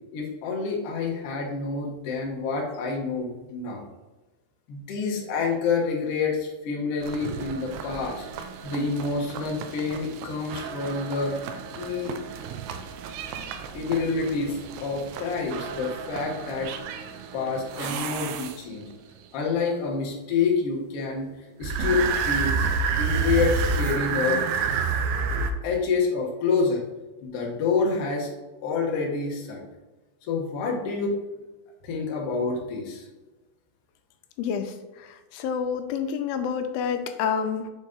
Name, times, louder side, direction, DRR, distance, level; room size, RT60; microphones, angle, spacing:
voice 1, 0.1-3.8 4.7-8.2 8.6-11.3 11.7-12.1 13.7-16.7 17.3-18.9 19.3-21.3 21.6-24.4 25.6-26.8 27.2-28.3 28.6-29.6 30.3-31.2 31.8-33.0, left 4 dB, 65° left, -2 dB, 1.5 m, -27 dB
sound 1, 7.0-18.9 21.6-25.5, right 5 dB, 80° right, 2.2 m, -30 dB
voice 2, 34.4-37.7, left 7 dB, 90° left, 8 dB, 2.5 m, -29 dB
6.6 x 4.0 x 3.7 m, 1.1 s
omnidirectional pair, 4.3 m